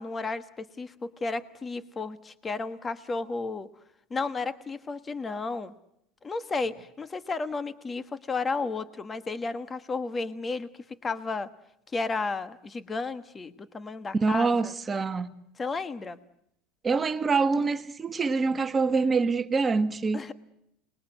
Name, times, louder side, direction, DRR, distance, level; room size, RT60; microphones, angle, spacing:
voice 1, 0.0-3.7 4.1-5.7 6.2-10.7 11.0-11.5 11.9-14.7 15.6-16.2 20.1-20.3, left 3 dB, 20° left, 1.3 m, -33 dB
voice 2, 14.2-15.3 16.8-20.2, right 4 dB, 20° right, 1.4 m, -25 dB
28.0 x 21.0 x 7.8 m
supercardioid pair, 140°, 0 cm